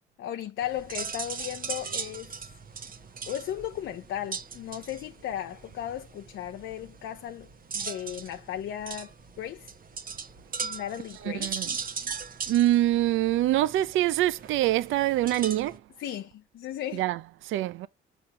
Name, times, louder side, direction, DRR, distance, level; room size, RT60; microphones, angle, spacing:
voice 1, 0.2-2.4 3.3-7.5 7.7-9.7 10.6-11.6 16.0-17.0, left 11 dB, 75° left, 0.7 m, -36 dB
sound 1, 0.6-15.8, right 5 dB, 45° right, 1.1 m, -39 dB
voice 2, 11.2-11.8 12.5-15.8 16.9-17.9, right 14 dB, 80° right, 0.5 m, -25 dB
7.0 x 3.0 x 5.5 m
cardioid pair, 90°, 20 cm